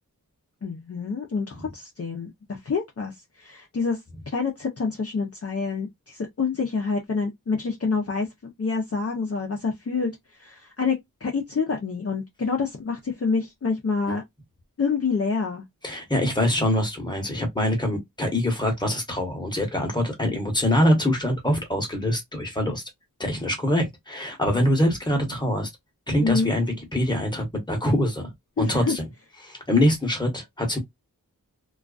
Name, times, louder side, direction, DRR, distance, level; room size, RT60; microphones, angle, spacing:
voice 1, 0.6-4.0 4.3-10.1 10.4-14.2 14.8-15.6 26.2-26.5 28.6-28.9, left 4 dB, 45° left, 0.5 m, -27 dB
voice 2, 15.8-22.8 23.2-25.7 26.1-29.0 29.4-30.8, left 1 dB, 15° left, 0.9 m, -24 dB
2.3 x 2.3 x 2.3 m
wide cardioid pair, 75°, 35 cm